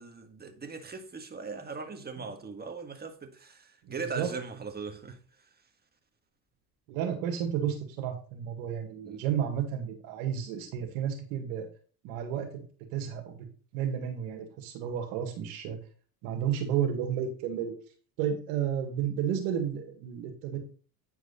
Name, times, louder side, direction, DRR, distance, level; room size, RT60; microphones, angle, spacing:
voice 1, 0.0-5.2 9.0-9.2, right 4 dB, 20° right, 1.6 m, -39 dB
voice 2, 3.8-4.3 6.9-11.7 12.0-12.6 12.9-13.5 13.7-15.8 16.2-17.7 18.2-20.6, right 9 dB, 80° right, 2.0 m, -32 dB
9.2 x 4.7 x 4.1 m
supercardioid pair, 90°, 43 cm